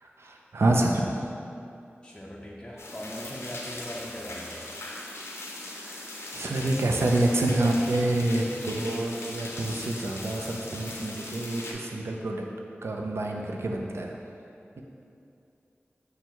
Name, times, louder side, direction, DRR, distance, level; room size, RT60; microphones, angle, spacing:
voice 1, 0.0-1.2 5.6-12.4 12.8-14.1, right 1 dB, 80° right, 1 dB, 0.4 m, -27 dB
voice 2, 2.0-4.6, equal, 20° left, -3 dB, 0.5 m, -40 dB
sound 1, 2.8-11.7, left 2 dB, 90° left, 0.5 m, -40 dB
5.2 x 2.3 x 4.5 m, 2.6 s
wide cardioid pair, 50°, 4 cm